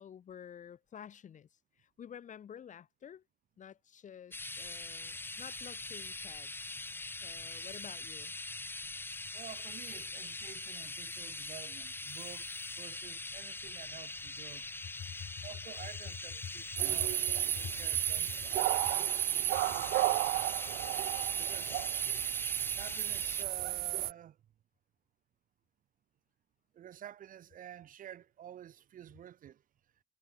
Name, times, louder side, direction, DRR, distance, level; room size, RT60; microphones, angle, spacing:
voice 1, 0.0-3.2 3.6-6.8 7.2-8.3 15.0-15.5 16.7-17.1 17.5-18.0 18.8-18.9, left 8 dB, 45° left, 6.1 m, -49 dB
sound 1, 4.3-23.4, left 2 dB, 10° left, 1.4 m, -43 dB
voice 2, 9.3-14.7 15.4-17.1 17.4-20.3 21.4-21.8 22.8-24.4 26.7-29.6, right 10 dB, 55° right, 1.4 m, -51 dB
sound 2, 16.8-24.1, right 16 dB, 70° right, 0.9 m, -32 dB
cardioid pair, 110°, 17 cm